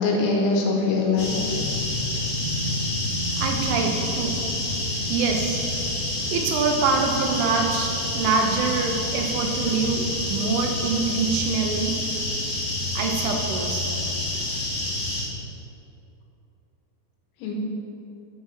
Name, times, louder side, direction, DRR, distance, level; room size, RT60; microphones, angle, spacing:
voice 1, 0.0-1.6 17.4-17.5, left 3 dB, 85° left, -1 dB, 3.2 m, -23 dB
sound 1, 1.2-15.2, left 1 dB, 60° left, 2.2 m, -28 dB
voice 2, 3.4-4.4 5.1-5.6 6.3-12.0 13.0-14.0, right 4 dB, 85° right, 3 dB, 3.2 m, -25 dB
7.6 x 4.5 x 5.5 m, 2.7 s
omnidirectional pair, 5.5 m